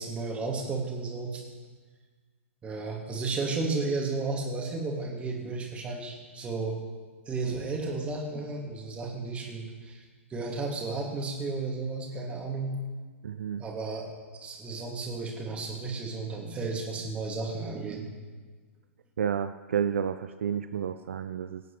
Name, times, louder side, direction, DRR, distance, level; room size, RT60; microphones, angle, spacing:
voice 1, 0.0-1.4 2.6-6.8 7.3-10.0 10.3-12.8 13.6-14.0 14.3-18.1, right 3 dB, 15° right, -1 dB, 2.6 m, -33 dB
voice 2, 13.2-13.6 19.2-21.6, right 8 dB, 65° right, 10 dB, 0.5 m, -30 dB
23.5 x 9.2 x 3.3 m, 1.4 s
figure-of-eight pair, 110°, 7 cm